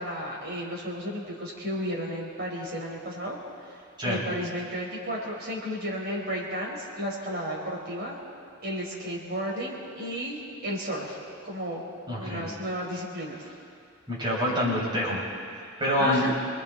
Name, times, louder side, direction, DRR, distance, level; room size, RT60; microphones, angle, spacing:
voice 1, 0.0-8.2 8.6-11.2 11.4-11.8 12.2-13.4 16.0-16.4, equal, 50° right, -3 dB, 5.0 m, -33 dB
voice 2, 12.1-12.5 14.1-15.2 15.8-16.2, left 1 dB, 20° right, -6 dB, 6.6 m, -26 dB
29.5 x 21.0 x 4.3 m, 2.3 s
head